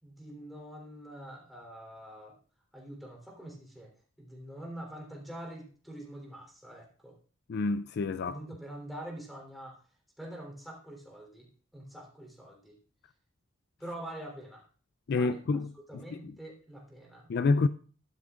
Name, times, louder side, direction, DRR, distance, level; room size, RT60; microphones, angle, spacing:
voice 1, 0.0-2.4 2.7-3.9 4.2-7.2 8.2-9.8 10.2-12.8 13.8-14.6 15.1-15.4 15.9-17.3, right 1 dB, ahead, 3.5 m, -45 dB
voice 2, 7.5-8.4 15.1-15.7 15.9-16.0 17.3-17.7, left 3 dB, 55° left, 0.4 m, -27 dB
13.5 x 12.0 x 2.5 m
head